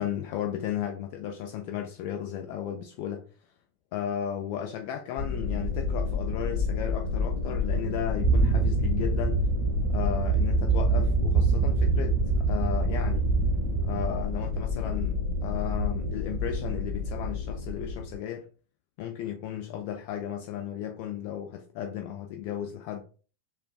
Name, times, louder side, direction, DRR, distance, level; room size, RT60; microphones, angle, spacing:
voice 1, 0.0-3.3 3.9-9.5 9.9-13.3 13.8-18.5 19.0-23.0, left 10 dB, 45° left, 0.4 m, -34 dB
sound 1, 5.2-18.2, left 4 dB, 20° left, 1.9 m, -30 dB
sound 2, 8.2-14.5, right 6 dB, 25° right, 0.7 m, -26 dB
6.7 x 2.3 x 2.2 m
figure-of-eight pair, 90°, 0 cm